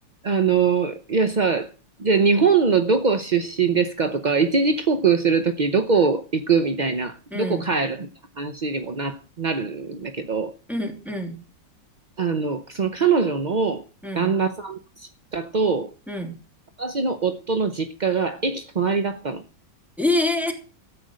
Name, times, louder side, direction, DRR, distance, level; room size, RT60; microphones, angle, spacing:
voice 1, 0.2-1.7 2.0-8.1 8.4-10.5 12.2-13.8 14.1-14.8 15.3-15.9 16.8-19.4, right 5 dB, 45° right, 0.5 m, -22 dB
voice 2, 7.3-7.7 10.7-11.4 14.0-14.3 16.1-16.3 20.0-20.5, left 2 dB, ahead, 2.7 m, -26 dB
13.5 x 9.0 x 6.3 m
omnidirectional pair, 1.9 m